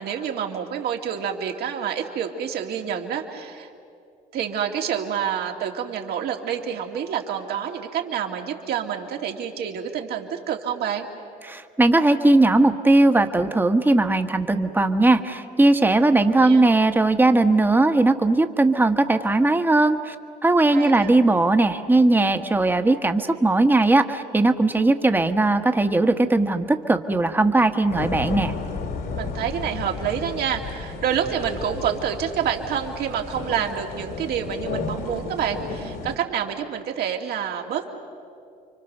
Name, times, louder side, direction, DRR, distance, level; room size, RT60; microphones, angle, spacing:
voice 1, 0.0-3.7 4.3-11.1 16.2-16.7 20.7-21.1 29.1-37.9, right 8 dB, 70° right, 3 dB, 2.4 m, -28 dB
voice 2, 11.4-20.1 20.4-28.5, right 2 dB, 10° right, 7 dB, 1.2 m, -19 dB
sound 1, 27.9-36.2, left 4 dB, 65° left, 2.7 m, -33 dB
30.0 x 24.5 x 6.7 m, 2.4 s
cardioid pair, 110°, 17 cm